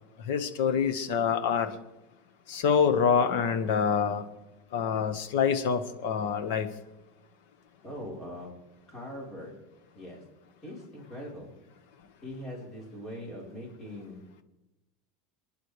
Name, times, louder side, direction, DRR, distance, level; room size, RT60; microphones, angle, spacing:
voice 1, 0.2-1.8 2.5-4.2 4.7-6.7, left 6 dB, 70° left, 1.5 m, -26 dB
voice 2, 7.8-9.7 9.9-10.3 10.6-11.6 12.2-14.3, left 1 dB, 20° left, 4.6 m, -42 dB
29.5 x 10.5 x 3.4 m
supercardioid pair, 145°, 0 cm